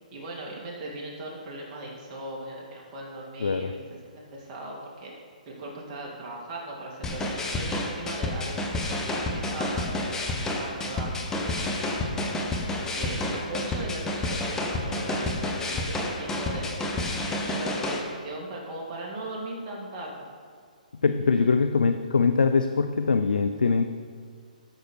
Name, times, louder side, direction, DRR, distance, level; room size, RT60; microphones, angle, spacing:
voice 1, 0.1-3.7 4.0-5.1 5.5-12.0 12.7-16.8 17.3-20.3 21.3-21.5, right 1 dB, 30° right, -3 dB, 2.4 m, -38 dB
voice 2, 3.4-3.7 21.0-23.9, left 4 dB, 80° left, 8 dB, 0.6 m, -23 dB
sound 1, 7.0-18.0, left 2 dB, 10° left, 1.1 m, -30 dB
13.0 x 6.5 x 4.6 m, 2.1 s
hypercardioid pair, 140°, 5 cm